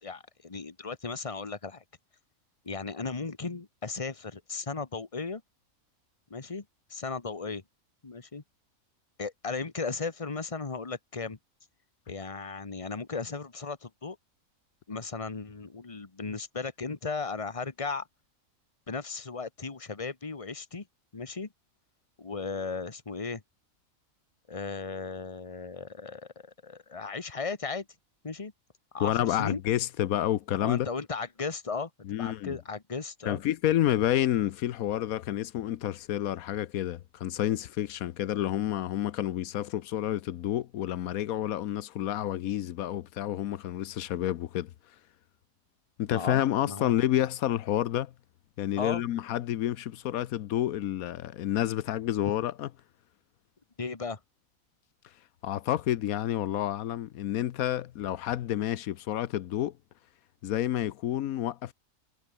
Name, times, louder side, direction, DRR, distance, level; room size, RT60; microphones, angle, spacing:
voice 1, 0.0-1.8 2.6-5.4 6.3-6.6 6.9-7.6 8.0-8.4 9.2-11.4 12.1-14.2 14.9-18.1 18.9-20.9 21.1-21.5 22.2-23.4 24.5-27.9 28.2-28.5 28.9-29.6 30.6-31.9 32.2-33.4 46.1-46.9 48.8-49.0 53.8-54.2, left 4 dB, 25° left, 1.5 m, -36 dB
voice 2, 29.0-30.9 32.1-32.6 33.2-44.7 46.0-48.1 48.6-52.7 55.4-59.7 60.4-61.7, left 12 dB, 85° left, 1.2 m, -29 dB
omnidirectional pair, 1.5 m